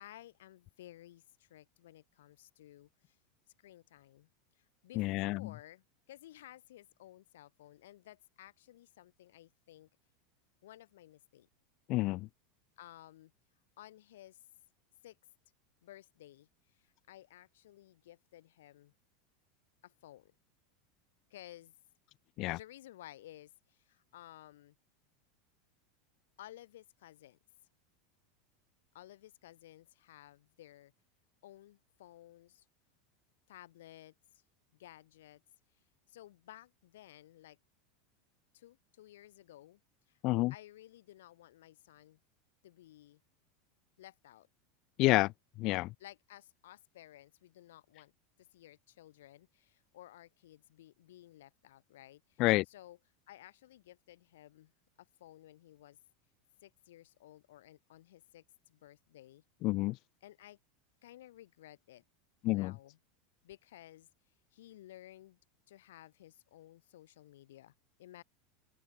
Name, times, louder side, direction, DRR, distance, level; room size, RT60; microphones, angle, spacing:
voice 1, 0.0-3.2 3.6-4.3 4.6-9.9 10.6-11.5 12.8-13.3 13.8-14.4 15.0-15.2 15.8-18.9 19.8-20.3 21.3-21.7 22.5-24.8 26.4-27.4 28.9-30.9 31.4-32.7 33.5-34.4 34.8-35.4 36.1-37.6 38.5-39.8 40.1-40.2 40.5-42.2 42.6-43.2 44.0-44.5 46.0-48.1 48.4-53.0 53.3-54.7 55.0-56.0 56.6-59.4 60.2-60.6 61.0-62.0 62.5-63.0 63.4-64.1 64.5-65.4 65.7-67.7 68.0-68.2, left 14 dB, 80° left, 3.2 m, -55 dB
voice 2, 5.0-5.4 11.9-12.3 22.4-22.6 40.2-40.5 45.0-45.3 45.6-45.9 52.4-52.6 59.6-60.0 62.4-62.7, left 20 dB, 50° left, 0.3 m, -29 dB
open air
supercardioid pair, 115°, 0 cm